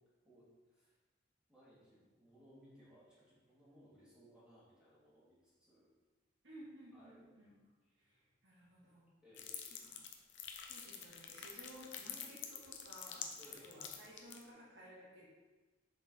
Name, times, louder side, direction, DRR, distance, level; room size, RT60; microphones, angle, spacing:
voice 1, 0.2-1.0 1.5-5.9 6.9-7.2 7.8-7.9 9.2-9.7 13.4-13.8, equal, 5° right, -10 dB, 2.2 m, -63 dB
voice 2, 6.4-7.5 8.0-9.1 9.8-10.1 10.4-15.3, equal, 70° right, -8 dB, 2.2 m, -57 dB
sound 1, 9.3-14.4, left 8 dB, 75° left, 0.7 m, -47 dB
7.3 x 4.7 x 3.8 m, 1.3 s
head